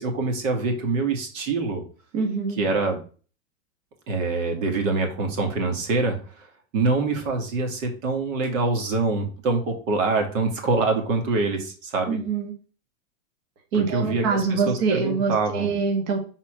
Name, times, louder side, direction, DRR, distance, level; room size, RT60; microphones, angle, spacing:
voice 1, 0.0-1.8 2.6-3.0 4.1-6.5 6.7-12.2 13.7-15.7, right 3 dB, 70° right, 3 dB, 2.2 m, -25 dB
voice 2, 2.1-2.6 12.1-12.5 13.7-16.2, right 5 dB, 45° right, 1 dB, 1.7 m, -24 dB
6.0 x 4.3 x 5.1 m, 0.39 s
supercardioid pair, 150°, 40 cm